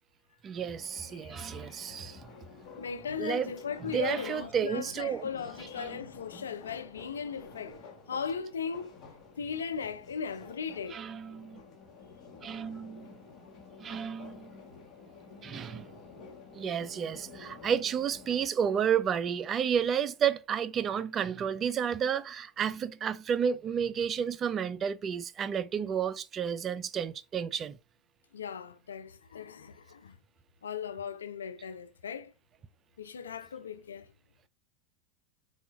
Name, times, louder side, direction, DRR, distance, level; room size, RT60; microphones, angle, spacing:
voice 1, 0.4-2.3 3.2-3.5 3.9-5.3 5.8-5.9 10.9-11.6 12.4-13.1 13.8-14.6 15.4-15.9 16.5-27.8, right 8 dB, 35° right, 0.3 m, -31 dB
sound 1, 0.6-18.5, left 4 dB, 40° left, 1.0 m, -50 dB
voice 2, 2.8-7.8 8.1-9.0 9.4-11.0 28.3-30.2 30.6-32.3 33.0-34.1, left 6 dB, 85° left, 0.3 m, -37 dB
3.9 x 2.3 x 2.3 m
hypercardioid pair, 95°, 0 cm